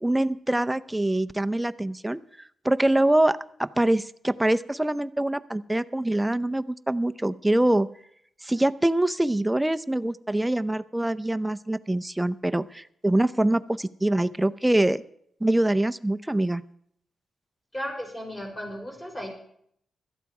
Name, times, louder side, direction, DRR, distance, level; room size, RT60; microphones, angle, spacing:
voice 1, 0.0-2.2 2.6-7.9 8.4-15.0 15.4-16.6, right 1 dB, 10° right, 12 dB, 0.6 m, -24 dB
voice 2, 17.7-19.3, equal, 15° left, 1 dB, 5.1 m, -35 dB
16.5 x 13.0 x 4.8 m, 0.68 s
cardioid pair, 90°, 0 cm